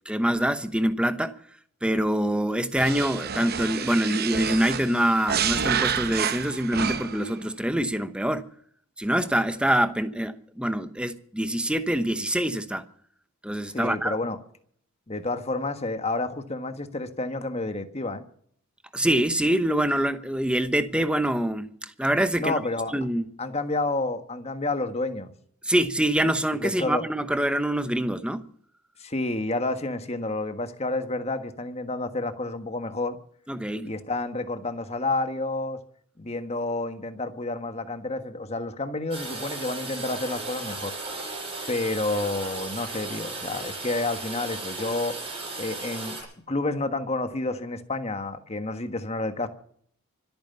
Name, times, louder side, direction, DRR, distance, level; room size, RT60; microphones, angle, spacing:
voice 1, 0.1-1.4 1.8-8.5 9.0-12.8 13.4-14.2 18.9-22.5 22.9-23.2 25.6-28.4 33.5-33.9, right 1 dB, 5° right, 0.9 m, -25 dB
sound 1, 2.7-7.3, right 7 dB, 45° right, 0.9 m, -29 dB
voice 2, 13.7-14.4 15.1-18.2 22.4-22.9 23.4-25.3 26.6-27.0 29.0-33.2 33.8-35.8 36.2-40.9 41.7-45.2 45.6-46.2 46.5-49.5, left 2 dB, 30° left, 1.4 m, -29 dB
Toilet flush, 39.1-46.2, right 3 dB, 25° right, 7.6 m, -35 dB
24.5 x 9.3 x 5.6 m
head